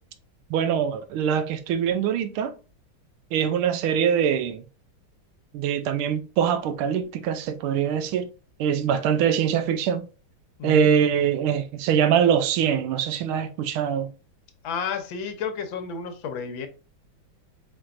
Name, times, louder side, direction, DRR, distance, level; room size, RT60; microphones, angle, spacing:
voice 1, 0.5-2.5 3.3-4.6 5.5-8.3 8.6-10.0 10.6-14.1, right 8 dB, 85° right, 1.5 m, -23 dB
voice 2, 10.6-10.9 14.6-16.7, left 6 dB, 70° left, 1.5 m, -31 dB
4.5 x 4.4 x 2.5 m
omnidirectional pair, 2.3 m